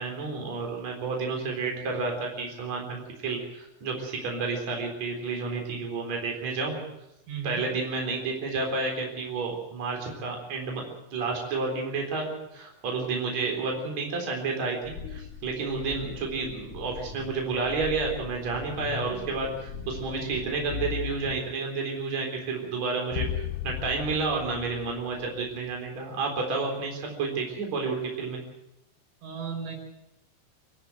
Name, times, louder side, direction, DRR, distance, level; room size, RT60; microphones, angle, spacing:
voice 1, 0.0-6.8 7.4-10.8 11.1-28.4, right 4 dB, 40° right, 1 dB, 4.7 m, -30 dB
voice 2, 7.3-7.7 29.2-29.7, right 7 dB, 85° right, 2 dB, 6.9 m, -35 dB
sound 1, 14.8-21.4, left 7 dB, 30° left, 3.7 m, -39 dB
sound 2, 23.1-25.7, left 12 dB, 80° left, 3.2 m, -35 dB
25.5 x 13.0 x 7.7 m, 0.85 s
omnidirectional pair, 5.5 m